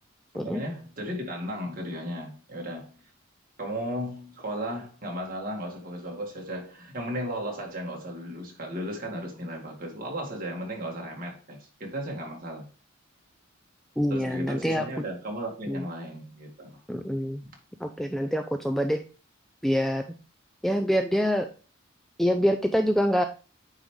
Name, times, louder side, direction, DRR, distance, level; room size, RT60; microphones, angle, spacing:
voice 1, 0.3-2.9 3.6-12.7 14.1-16.8, equal, 45° right, 2.0 m, -35 dB
voice 2, 14.0-14.9 15.7-15.8 16.9-17.4 17.8-19.0 19.6-20.1 20.6-21.5 22.2-23.2, equal, ahead, 0.3 m, -25 dB
9.0 x 3.6 x 3.2 m
head